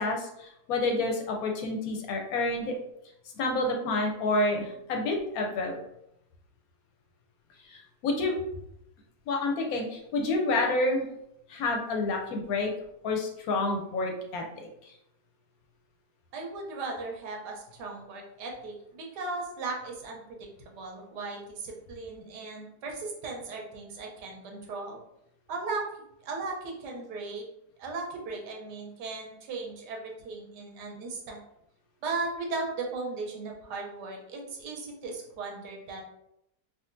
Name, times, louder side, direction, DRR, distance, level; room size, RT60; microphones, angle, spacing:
voice 1, 0.0-2.7 3.3-5.8 7.7-8.4 9.3-11.0 11.5-12.7 13.0-14.9, left 2 dB, 70° left, 2 dB, 0.9 m, -29 dB
voice 2, 16.3-25.0 25.5-25.8 26.2-27.5 27.8-31.4 32.0-36.1, right 3 dB, 90° right, 0 dB, 1.3 m, -37 dB
3.7 x 2.3 x 2.5 m, 0.80 s
omnidirectional pair, 1.7 m